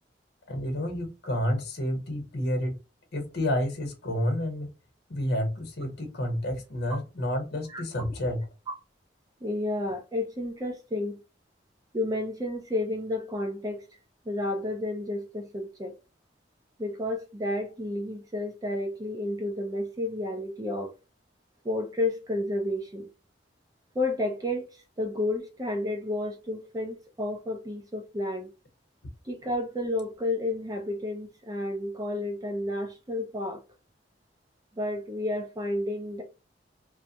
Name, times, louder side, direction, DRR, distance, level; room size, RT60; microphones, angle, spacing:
voice 1, 0.5-2.8 3.1-4.7 5.1-8.5, equal, 60° left, 1.0 m, -30 dB
voice 2, 9.4-11.2 11.9-13.8 14.3-15.9 16.8-20.9 21.6-23.1 23.9-28.5 29.2-33.6 34.8-36.2, left 1 dB, 20° right, 0.5 m, -31 dB
2.4 x 2.2 x 2.7 m
head